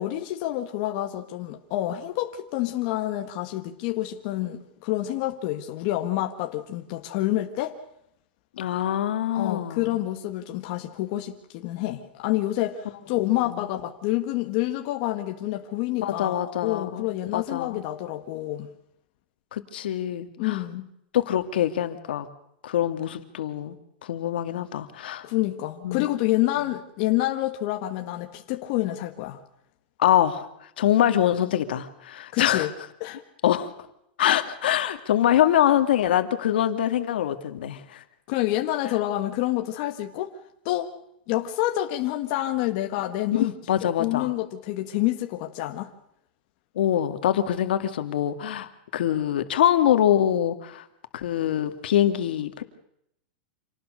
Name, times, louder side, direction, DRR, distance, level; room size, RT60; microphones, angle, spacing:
voice 1, 0.0-7.8 9.3-18.7 20.4-20.9 25.2-29.4 32.3-32.7 33.0-33.2 38.3-40.3 40.6-40.9 41.3-43.5 43.8-45.9, left 15 dB, 40° left, 5 dB, 1.5 m, -28 dB
voice 2, 8.6-10.0 13.4-13.7 16.0-17.8 19.5-20.6 21.1-22.3 22.6-23.8 24.0-25.3 25.8-26.1 30.0-30.5 30.8-32.7 33.4-33.7 34.2-38.0 43.3-44.3 46.8-50.8 51.1-52.6, left 11 dB, 75° left, 8 dB, 2.2 m, -24 dB
27.5 x 19.0 x 6.5 m, 0.77 s
supercardioid pair, 175°, 5 cm